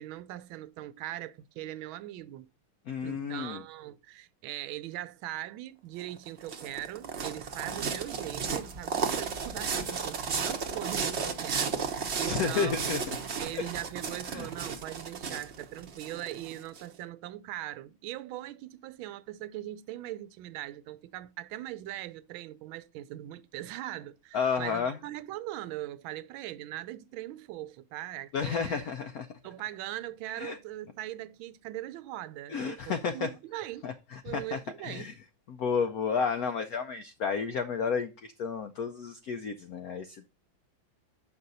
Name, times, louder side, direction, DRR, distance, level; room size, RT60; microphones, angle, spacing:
voice 1, 0.0-2.5 3.0-13.0 13.4-28.9 29.4-33.9 34.2-35.1, right 14 dB, 85° right, 1.4 m, -40 dB
voice 2, 2.9-3.6 12.3-13.0 13.5-13.6 14.3-14.5 24.3-25.0 28.3-29.3 30.3-30.6 32.5-33.3 33.8-35.1 35.5-40.3, left 6 dB, 80° left, 0.8 m, -31 dB
sound 1, 6.0-16.8, right 5 dB, 50° right, 0.9 m, -34 dB
7.8 x 5.5 x 4.0 m
omnidirectional pair, 2.2 m